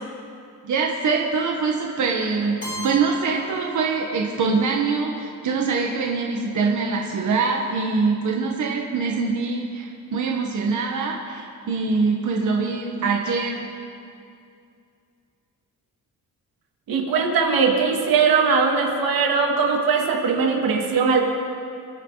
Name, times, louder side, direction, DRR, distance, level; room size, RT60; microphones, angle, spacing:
voice 1, 0.6-13.7, right 4 dB, 55° right, 0 dB, 1.6 m, -24 dB
Keyboard (musical), 2.6-4.5, right 2 dB, 20° left, 3.9 m, -36 dB
voice 2, 16.9-21.2, right 5 dB, 85° right, 1 dB, 2.2 m, -20 dB
28.0 x 9.4 x 4.1 m, 2.4 s
cardioid pair, 150°, 34 cm